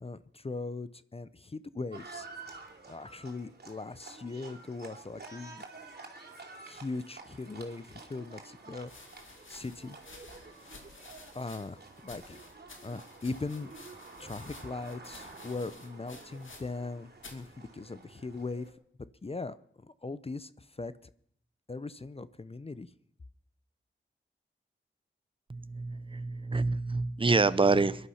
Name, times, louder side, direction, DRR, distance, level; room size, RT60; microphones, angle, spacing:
voice 1, 0.0-2.3 2.9-5.6 6.6-8.9 9.2-10.0 10.3-10.9 11.3-12.4 12.8-13.7 14.2-18.7 19.2-21.1 21.7-22.9, left 3 dB, 30° left, 0.6 m, -40 dB
Livestock farm animals working animals, 1.9-18.7, right 3 dB, 50° right, 3.0 m, -50 dB
sound 1, 8.9-16.9 17.2-17.5 18.3-18.7, left 3 dB, 75° left, 2.4 m, -53 dB
voice 2, 25.5-28.1, right 3 dB, 25° right, 0.7 m, -27 dB
22.0 x 11.5 x 5.7 m
cardioid pair, 60°, 20 cm